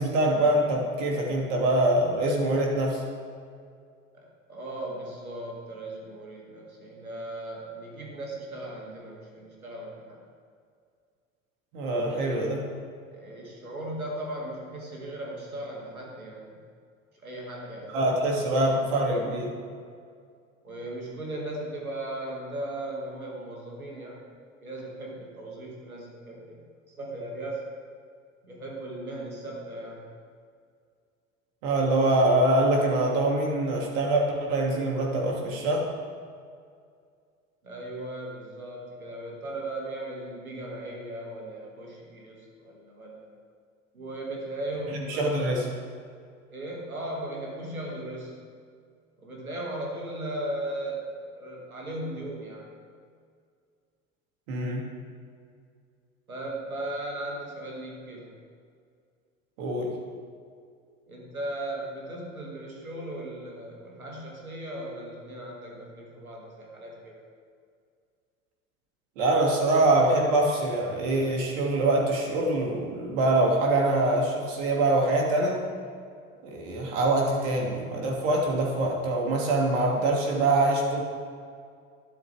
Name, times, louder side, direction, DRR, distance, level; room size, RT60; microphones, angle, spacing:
voice 1, 0.0-3.0 11.7-12.6 17.9-19.5 31.6-35.9 45.1-45.6 54.5-54.8 59.6-59.9 69.2-75.6 76.4-81.0, right 2 dB, 65° right, -1 dB, 2.8 m, -24 dB
voice 2, 4.1-10.2 12.1-12.6 13.1-16.6 17.2-18.8 19.1-19.3 20.6-24.2 24.6-27.6 28.4-30.1 37.6-43.3 43.9-45.7 46.5-48.4 49.2-52.7 56.3-58.3 61.1-67.2, right 1 dB, 90° right, -2 dB, 2.3 m, -37 dB
12.5 x 12.0 x 3.6 m, 2.2 s
figure-of-eight pair, 75°, 41 cm